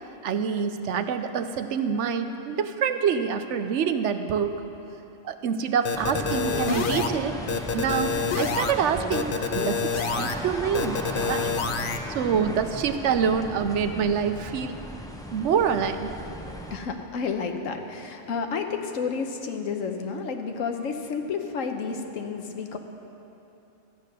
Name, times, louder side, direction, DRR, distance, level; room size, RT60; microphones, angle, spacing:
voice 1, 0.2-4.6 5.2-7.4 7.7-9.9 10.2-11.5 12.1-14.7 15.3-16.1, right 7 dB, 70° right, 9 dB, 0.9 m, -26 dB
sound 1, 5.8-7.1 7.5-8.7 9.1-10.3 10.7-12.0, left 5 dB, 50° left, 0.7 m, -27 dB
sound 2, 5.9-16.8, equal, 5° left, 0.5 m, -36 dB
voice 2, 16.5-22.8, left 5 dB, 85° left, 5 dB, 1.3 m, -31 dB
13.5 x 9.3 x 6.6 m, 2.9 s
omnidirectional pair, 1.3 m